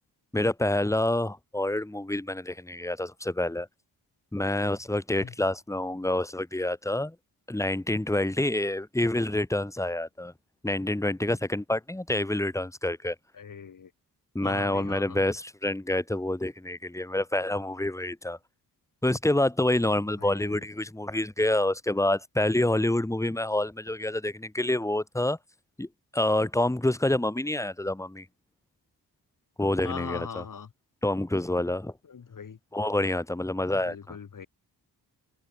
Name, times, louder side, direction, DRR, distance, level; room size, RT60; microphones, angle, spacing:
voice 1, 0.3-3.7 4.3-7.1 7.5-10.3 10.6-13.1 14.3-18.4 19.0-25.4 25.8-25.9 26.1-28.2 29.6-30.4 31.0-31.9 32.7-34.2, left 1 dB, 5° left, 1.5 m, -27 dB
voice 2, 13.3-13.9 14.4-15.2 19.8-20.6 29.8-30.7 32.1-32.6 33.7-34.5, left 6 dB, 50° left, 2.3 m, -40 dB
cardioid pair, 65°, 40 cm